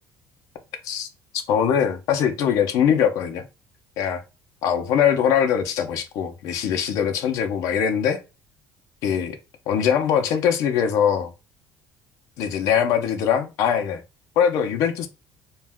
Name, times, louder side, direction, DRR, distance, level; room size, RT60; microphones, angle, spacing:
voice 1, 1.5-3.5 4.0-4.2 4.6-8.2 9.0-9.4 9.7-11.3 12.4-14.0 14.4-15.1, left 8 dB, 70° left, 0.6 m, -22 dB
2.4 x 2.1 x 3.4 m
cardioid pair, 160°, 6 cm